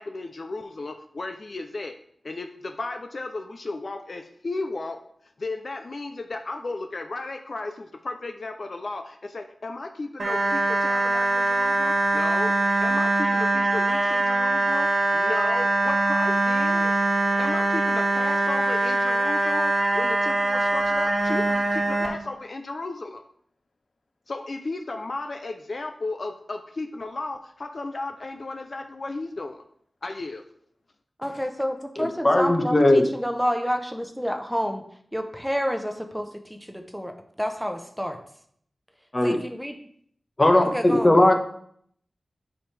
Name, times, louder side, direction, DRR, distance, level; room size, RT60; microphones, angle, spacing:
voice 1, 0.0-2.0 2.2-5.0 5.4-12.5 12.8-14.9 15.1-16.9 17.4-23.2 24.3-29.6 30.0-30.4, left 2 dB, 60° left, 6 dB, 0.5 m, -34 dB
sound 1, 10.2-22.1, right 2 dB, 70° right, 1.5 m, -23 dB
voice 2, 31.2-34.8 35.1-37.1 37.4-38.2 39.2-39.7 40.7-41.1, equal, ahead, 5 dB, 0.9 m, -29 dB
voice 3, 32.0-33.0 39.1-39.4 40.4-41.3, left 1 dB, 35° left, 5 dB, 1.1 m, -18 dB
8.6 x 5.0 x 3.4 m, 0.64 s
cardioid pair, 55°, 0 cm